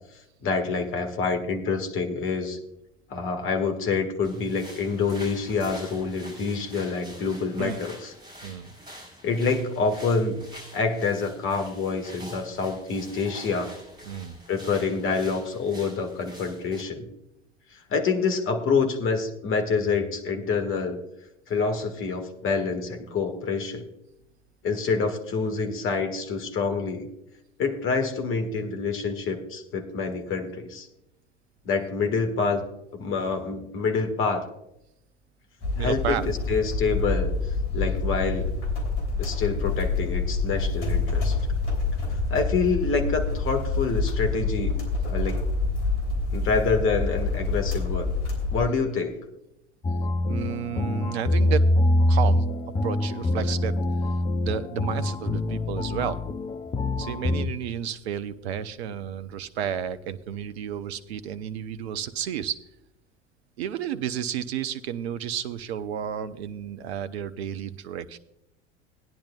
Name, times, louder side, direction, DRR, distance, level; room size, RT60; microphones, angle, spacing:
voice 1, 0.4-2.6 3.1-8.1 9.2-10.4 10.7-13.8 14.5-17.0 17.9-21.0 21.5-23.8 24.6-27.1 27.6-30.9 31.7-32.6 32.9-34.5 35.8-37.3 37.7-38.5 39.2-41.4 42.3-44.8 45.1-45.4 46.3-48.1 48.5-49.2, left 4 dB, 35° left, 5 dB, 1.7 m, -27 dB
sound 1, 4.2-16.8, equal, 10° right, 5.1 m, -46 dB
voice 2, 8.4-8.7 14.0-14.4 35.8-36.3 50.3-51.7 52.1-52.4 52.8-53.7 54.4-56.2 57.0-62.6 63.6-68.2, right 9 dB, 60° right, 12 dB, 0.8 m, -32 dB
sound 2, 35.6-48.6, left 3 dB, 55° left, 3.4 m, -27 dB
sound 3, 49.8-57.5, left 1 dB, 15° left, 0.6 m, -24 dB
18.5 x 10.0 x 2.3 m, 0.84 s
figure-of-eight pair, 75°, 36 cm